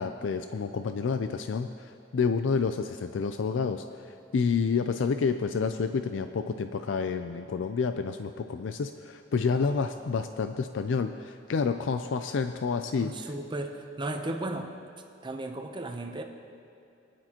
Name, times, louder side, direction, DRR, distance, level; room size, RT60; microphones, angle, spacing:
voice 1, 0.0-13.3, left 5 dB, 90° left, 8 dB, 0.4 m, -29 dB
voice 2, 13.0-14.7 15.2-16.2, right 2 dB, 25° right, 4 dB, 0.8 m, -35 dB
19.5 x 10.0 x 3.0 m, 2.7 s
head